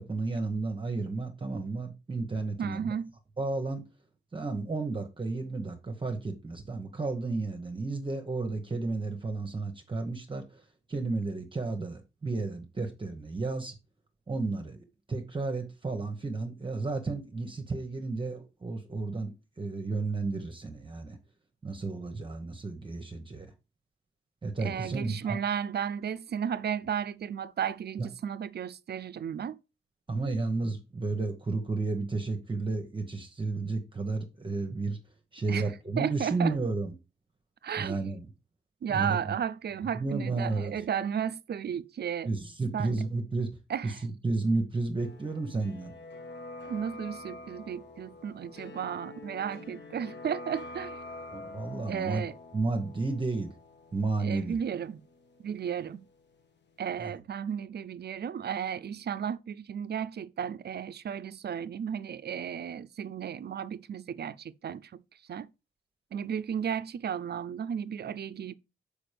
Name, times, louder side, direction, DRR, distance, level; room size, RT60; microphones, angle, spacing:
voice 1, 0.0-2.9 3.4-3.8 4.3-10.6 10.9-13.7 14.3-21.2 21.6-23.5 24.4-25.4 30.1-35.0 35.3-36.9 37.8-38.2 38.9-39.3 40.0-40.8 42.2-43.5 43.8-45.9 51.3-52.2 52.5-53.5 53.9-54.6 57.0-57.1, right 3 dB, 25° right, 1.0 m, -32 dB
voice 2, 2.6-3.1 24.6-29.6 35.5-35.7 36.0-36.6 37.6-38.1 38.8-42.3 42.7-43.0 43.7-44.0 46.6-51.0 51.8-52.3 54.2-55.0 55.4-56.0 56.8-65.0 65.3-65.5 66.1-68.5, right 8 dB, 50° right, 0.5 m, -34 dB
sound 1, 45.0-56.7 56.9-57.0, left 2 dB, 55° left, 1.2 m, -46 dB
6.0 x 5.0 x 5.0 m
wide cardioid pair, 130°, 21 cm